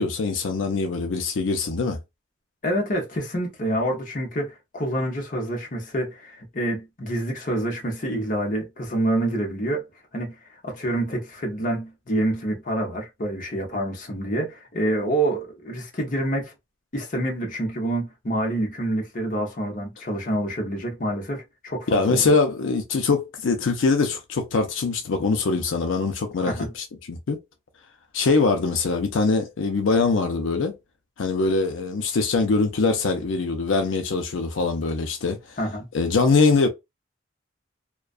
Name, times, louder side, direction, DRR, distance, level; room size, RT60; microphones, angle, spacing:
voice 1, 0.0-2.0 21.9-27.4 28.1-30.8 31.2-35.6 35.9-36.7, left 4 dB, 85° left, 0.5 m, -23 dB
voice 2, 2.6-9.9 10.1-10.3 10.6-16.5 16.9-22.3 26.5-26.7 35.6-35.9, right 1 dB, 45° left, 0.8 m, -27 dB
2.3 x 2.2 x 2.4 m
head